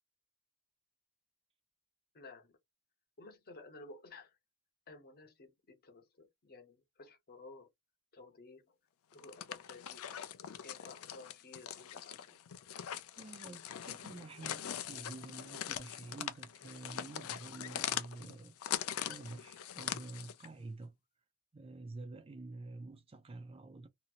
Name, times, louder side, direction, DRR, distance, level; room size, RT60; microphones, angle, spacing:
voice 1, 2.1-2.6 3.2-4.4 4.9-7.7 8.1-8.8 9.1-10.3 10.6-12.4, left 3 dB, 45° left, 0.9 m, -54 dB
sound 1, 9.1-20.5, left 10 dB, 65° left, 0.4 m, -42 dB
voice 2, 13.2-18.6 19.0-20.9 21.5-23.9, right 3 dB, 25° right, 0.4 m, -48 dB
2.8 x 2.7 x 2.5 m
head